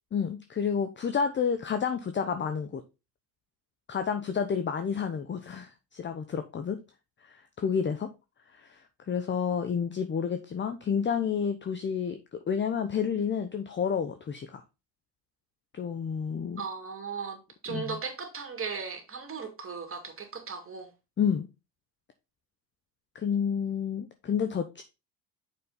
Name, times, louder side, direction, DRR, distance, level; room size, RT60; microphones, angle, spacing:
voice 1, 0.1-2.8 3.9-6.8 7.2-8.1 8.5-14.6 15.7-16.6 17.7-18.0 21.2-21.5 23.1-24.8, left 7 dB, 25° left, 0.8 m, -30 dB
voice 2, 16.6-20.9, right 5 dB, 30° right, 2.6 m, -37 dB
7.1 x 5.2 x 3.9 m
supercardioid pair, 90°, 46 cm